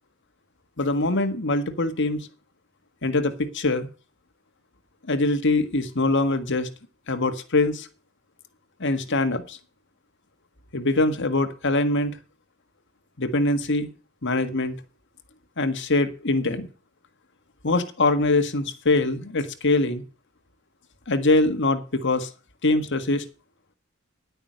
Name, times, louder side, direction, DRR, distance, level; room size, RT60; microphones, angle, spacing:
voice 1, 0.8-2.3 3.0-3.9 5.1-6.7 7.1-7.9 8.8-9.6 10.7-12.2 13.2-13.9 14.2-14.8 15.6-16.7 17.6-20.0 21.1-22.3 22.6-23.2, left 2 dB, 60° left, 8 dB, 1.6 m, -23 dB
10.5 x 8.9 x 6.4 m, 0.36 s
head